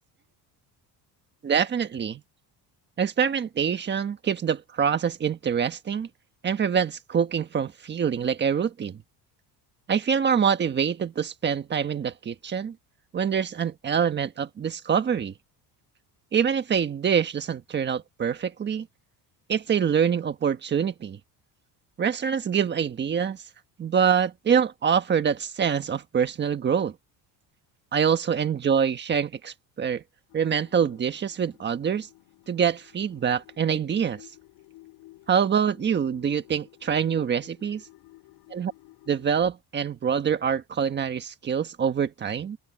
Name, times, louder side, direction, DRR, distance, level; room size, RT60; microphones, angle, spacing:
voice 1, 1.4-2.2 3.0-6.1 6.4-9.0 9.9-12.7 13.1-15.3 16.3-18.9 19.5-21.2 22.0-23.4 23.8-26.9 27.9-30.0 30.3-32.1 32.5-34.3 35.3-37.9 38.5-38.7 39.1-42.6, right 7 dB, 25° right, 1.4 m, -25 dB
sound 1, 30.3-39.4, left 18 dB, 85° left, 6.8 m, -53 dB
open air
cardioid pair, 170°, 40 cm